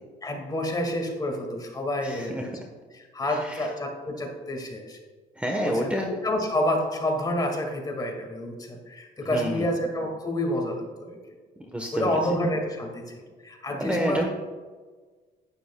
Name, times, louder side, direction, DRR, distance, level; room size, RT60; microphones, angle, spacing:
voice 1, 0.2-2.5 2.9-5.0 5.6-11.2 11.9-13.1 13.4-14.2, left 1 dB, 25° left, 2 dB, 1.9 m, -29 dB
voice 2, 2.0-2.5 3.3-3.7 5.4-6.1 9.2-9.7 11.7-12.4 13.8-14.2, equal, 10° right, 1 dB, 1.0 m, -29 dB
11.5 x 9.5 x 2.2 m, 1.4 s
cardioid pair, 110°, 17 cm